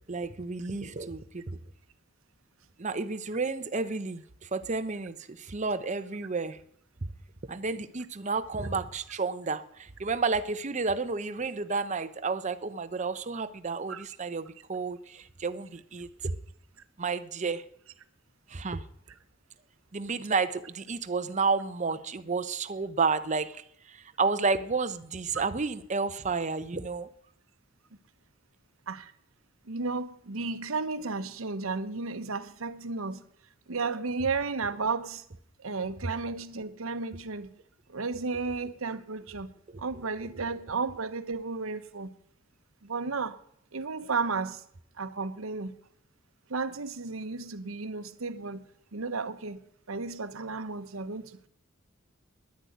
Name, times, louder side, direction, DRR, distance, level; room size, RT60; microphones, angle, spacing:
voice 1, 0.1-1.6 2.8-6.6 7.0-7.1 7.5-16.3 17.0-17.6 18.5-18.8 19.9-27.1, right 4 dB, 35° right, 0.7 m, -31 dB
voice 2, 29.7-33.2 33.7-35.2 35.6-37.6 37.9-39.5 39.8-42.1 42.8-43.4 43.7-44.6 45.0-45.7 46.5-48.6 48.9-51.5, right 4 dB, 80° right, 0.9 m, -33 dB
10.5 x 10.5 x 9.3 m
head